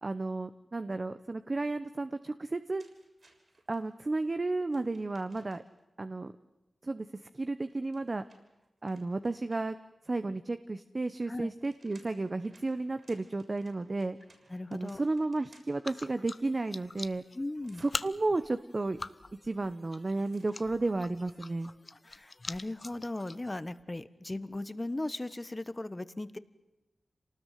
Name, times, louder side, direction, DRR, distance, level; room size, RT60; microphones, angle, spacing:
voice 1, 0.0-2.8 3.7-5.6 6.0-6.3 6.8-7.1 7.3-8.2 8.8-9.8 10.0-14.2 14.7-17.2 17.8-19.0 19.4-21.7, right 2 dB, 40° right, 11 dB, 1.1 m, -33 dB
sound 1, 2.8-3.8 4.7-5.8 7.6-9.9 11.3-15.9 17.6-18.0 20.2-20.7, right 2 dB, 55° right, 6.9 m, -63 dB
voice 2, 14.5-15.0 17.3-17.8 21.9-26.4, left 2 dB, 25° left, 15 dB, 1.4 m, -37 dB
sound 2, 15.8-23.8, left 3 dB, 45° left, 0.8 m, -44 dB
27.5 x 19.5 x 9.4 m, 1.0 s
wide cardioid pair, 65°, 0 cm